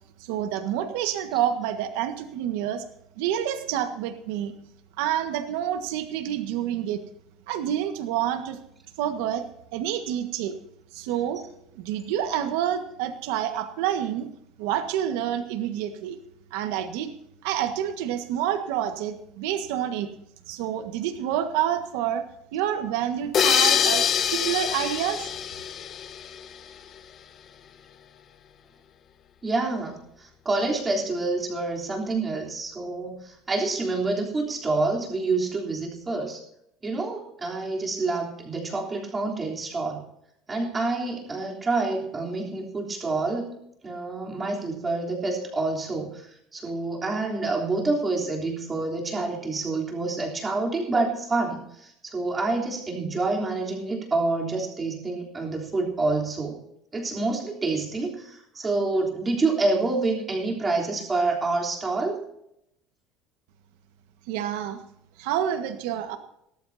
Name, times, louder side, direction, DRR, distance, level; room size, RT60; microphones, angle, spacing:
voice 1, 0.2-2.9 3.2-4.5 5.0-7.0 7.5-8.6 9.0-9.4 9.7-10.6 10.9-11.4 11.7-14.3 14.6-16.2 16.5-17.1 17.4-20.1 20.5-22.2 22.5-25.3 64.3-64.8 65.2-66.2, right 10 dB, 80° right, 8 dB, 1.5 m, -28 dB
sound 1, 23.3-26.7, left 8 dB, 35° left, 1.1 m, -24 dB
voice 2, 29.4-36.4 36.8-40.1 40.5-43.5 43.8-56.6 56.9-62.2, right 3 dB, 15° right, -1 dB, 3.5 m, -27 dB
17.5 x 14.0 x 2.7 m, 0.77 s
cardioid pair, 165°, 0 cm